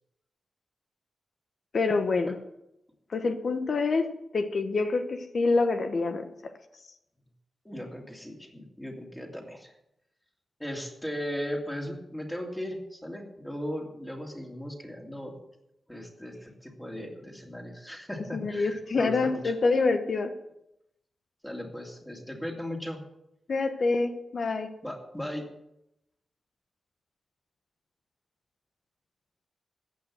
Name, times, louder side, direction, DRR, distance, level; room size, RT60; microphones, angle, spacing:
voice 1, 1.7-2.4 3.1-6.5 18.3-20.3 23.5-24.7, left 3 dB, 55° left, 8 dB, 1.0 m, -26 dB
voice 2, 7.6-9.7 10.6-15.4 15.9-19.5 21.4-23.0 24.8-25.5, equal, 10° left, 0 dB, 2.8 m, -37 dB
14.5 x 9.2 x 6.3 m, 0.84 s
wide cardioid pair, 110°, 0 cm